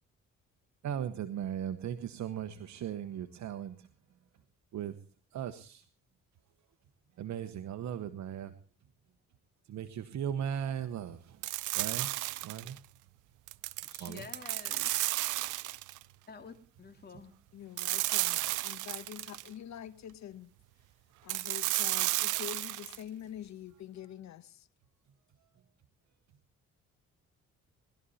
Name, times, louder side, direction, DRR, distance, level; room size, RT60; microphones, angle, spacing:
voice 1, 0.8-3.9 4.7-4.9 5.3-5.8 7.2-8.5 9.7-11.4 11.8-12.1 12.4-12.8 14.0-14.2, right 9 dB, 65° right, 1.1 m, -37 dB
sound 1, 11.4-12.8 13.5-16.0 17.8-19.5 21.3-23.0, right 17 dB, 85° right, 0.6 m, -33 dB
voice 2, 13.8-15.1 16.3-17.3, left 4 dB, 35° left, 2.6 m, -49 dB
voice 3, 17.5-20.5 21.2-24.7, left 10 dB, 65° left, 1.1 m, -46 dB
20.0 x 13.0 x 4.2 m
cardioid pair, 90°, 30 cm